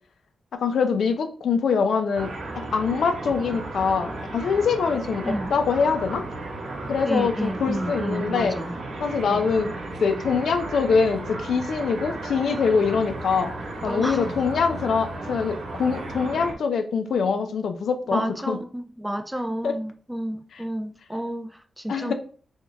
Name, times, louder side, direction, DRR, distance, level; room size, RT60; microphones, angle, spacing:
voice 1, 0.5-6.2 6.9-8.6 9.0-9.7 10.0-13.5 13.8-18.6 19.6-19.8 21.9-22.1, left 5 dB, 80° left, 0.5 m, -24 dB
sound 1, 2.1-16.5, right 2 dB, 85° right, 1.0 m, -34 dB
voice 2, 7.1-8.8 9.2-9.5 13.9-14.3 18.1-22.1, right 1 dB, 5° right, 0.3 m, -30 dB
3.5 x 2.3 x 4.0 m
wide cardioid pair, 100°, 0 cm